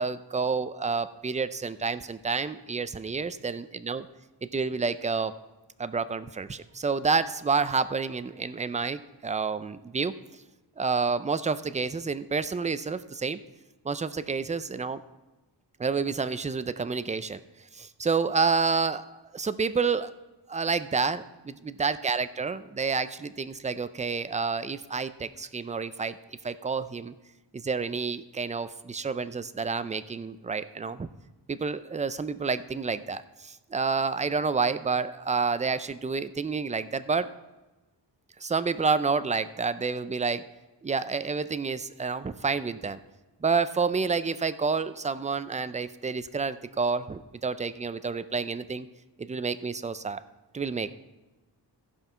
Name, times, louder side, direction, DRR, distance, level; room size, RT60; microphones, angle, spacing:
voice 1, 0.0-4.0 4.4-5.3 5.8-10.1 10.8-13.4 13.8-15.0 15.8-17.4 17.7-20.1 20.5-26.2 26.4-27.1 27.5-31.1 31.5-37.3 38.4-40.4 40.8-43.0 43.4-48.9 49.2-50.2 50.5-51.0, right 5 dB, 20° right, 13 dB, 0.4 m, -29 dB
15.5 x 5.5 x 4.5 m, 1.1 s
wide cardioid pair, 85°, 43 cm